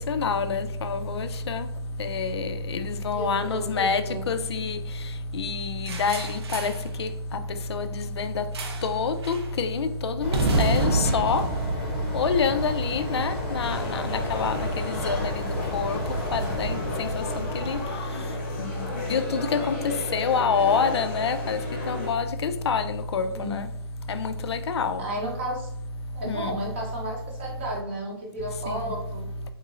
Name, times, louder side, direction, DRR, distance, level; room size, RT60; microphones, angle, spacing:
voice 1, 0.1-1.7 2.0-4.8 5.4-6.7 7.0-7.1 7.7-8.4 8.8-11.4 12.1-14.0 14.3-15.2 15.7-16.0 16.3-17.1 17.4-17.8 19.1-19.8 20.1-21.6 21.9-23.6 24.1-25.0 26.3-26.5, left 5 dB, 90° left, 0.4 m, -27 dB
voice 2, 3.1-4.2 23.3-23.6 25.0-25.7 26.1-29.3, right 1 dB, 30° right, 0.6 m, -33 dB
sound 1, 5.9-6.9 8.5-9.0 9.2-9.5 10.3-12.7, right 2 dB, 75° right, 0.7 m, -28 dB
sound 2, 10.2-17.9, left 1 dB, ahead, 0.9 m, -32 dB
sound 3, 13.6-22.1, left 2 dB, 25° left, 0.7 m, -35 dB
3.8 x 3.0 x 2.4 m
hypercardioid pair, 175°, 13 cm